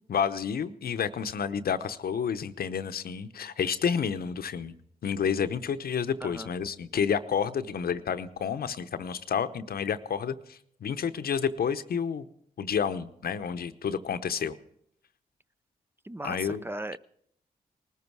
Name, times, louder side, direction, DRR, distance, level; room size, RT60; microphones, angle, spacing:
voice 1, 0.1-4.7 5.0-12.3 12.6-14.6 16.2-16.6, left 7 dB, 70° left, 0.8 m, -30 dB
voice 2, 6.2-6.5 16.0-17.0, right 1 dB, 15° right, 0.5 m, -37 dB
19.5 x 14.0 x 4.7 m
cardioid pair, 50°, 16 cm